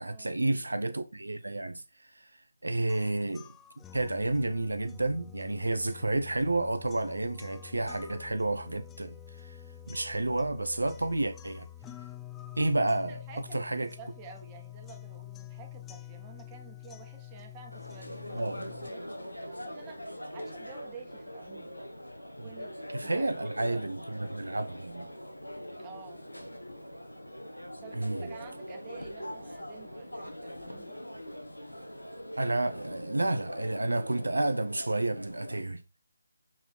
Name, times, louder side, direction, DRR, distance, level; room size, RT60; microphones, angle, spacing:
voice 1, 0.0-1.8 2.1-2.3 2.6-3.5 3.9-9.6 9.9-11.7 12.6-13.2 13.5-13.9 18.3-18.6 22.9-25.1 28.0-28.3 32.4-35.8, right 2 dB, 75° right, 0.7 m, -30 dB
sound 1, 2.9-18.9, left 12 dB, 10° left, 0.4 m, -47 dB
voice 2, 13.1-18.5 18.8-21.7 22.4-23.8 25.8-26.2 27.8-31.0, right 6 dB, 20° right, 1.8 m, -51 dB
sound 2, 17.7-35.6, equal, 85° left, 1.4 m, -42 dB
7.2 x 4.5 x 4.1 m
figure-of-eight pair, 150°, 0 cm